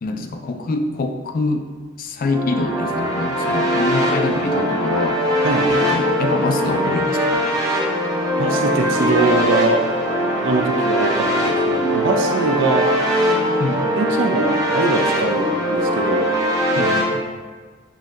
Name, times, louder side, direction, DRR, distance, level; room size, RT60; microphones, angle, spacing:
voice 1, 0.0-1.7 2.0-5.2 5.7-7.5 13.6-14.0 16.8-17.2, left 3 dB, 45° left, 5 dB, 0.4 m, -25 dB
sound 1, 2.2-17.0, equal, 20° right, 0.7 m, -20 dB
voice 2, 5.4-5.8 8.4-9.8 10.4-12.9 14.0-16.3, right 3 dB, 70° right, 4 dB, 0.5 m, -22 dB
7.3 x 2.7 x 2.5 m, 1.5 s
head